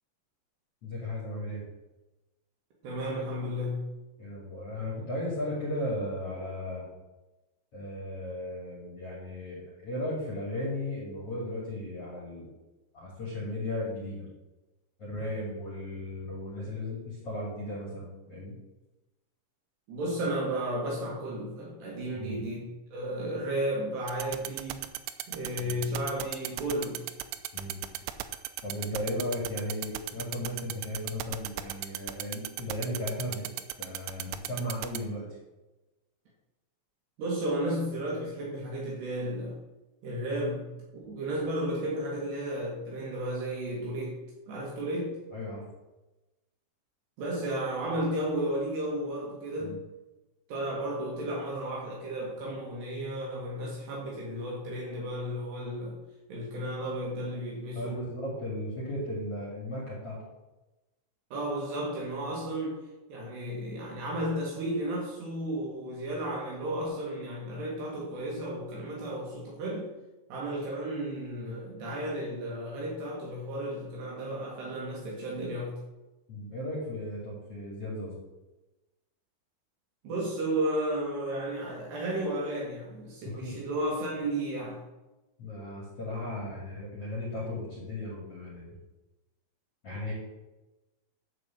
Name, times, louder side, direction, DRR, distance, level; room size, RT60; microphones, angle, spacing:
voice 1, 0.8-1.6 4.2-6.9 7.7-12.5 12.9-14.3 15.0-18.5 22.1-22.4 25.6-25.8 27.5-27.8 28.6-33.4 33.8-35.3 45.3-45.6 49.6-49.8 57.7-60.2 76.3-78.1 83.4-83.6 85.4-88.7 89.8-90.1, left 1 dB, 35° left, -5 dB, 2.8 m, -36 dB
voice 2, 2.8-3.9 19.9-24.9 25.3-27.0 37.2-39.6 40.0-40.7 41.0-44.2 44.5-45.1 47.2-49.8 50.5-56.0 56.3-58.0 61.3-62.8 63.1-69.9 70.3-75.8 80.0-84.8, right 1 dB, 65° right, -3 dB, 3.7 m, -33 dB
sound 1, 24.1-35.0, right 16 dB, 85° right, 2.9 m, -34 dB
11.0 x 4.9 x 7.6 m, 1.1 s
omnidirectional pair, 5.7 m